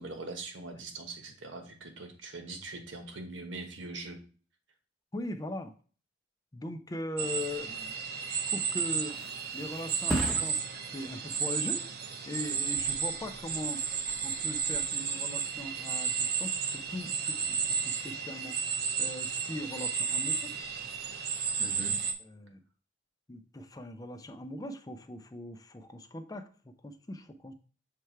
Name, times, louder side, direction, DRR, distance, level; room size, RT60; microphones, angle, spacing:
voice 1, 0.0-4.2 21.6-22.0, right 3 dB, 80° right, 5 dB, 1.1 m, -42 dB
voice 2, 5.1-5.7 6.5-7.9 8.2-9.2 9.5-11.9 12.3-13.8 14.2-20.6 22.3-22.6 23.3-27.5, left 1 dB, 20° left, 8 dB, 0.4 m, -40 dB
sound 1, 7.2-22.1, right 6 dB, 55° right, 0.7 m, -33 dB
Thump thud, 8.7-16.0 16.4-16.8, right 1 dB, ahead, 0.9 m, -41 dB
6.7 x 3.3 x 4.5 m, 0.39 s
head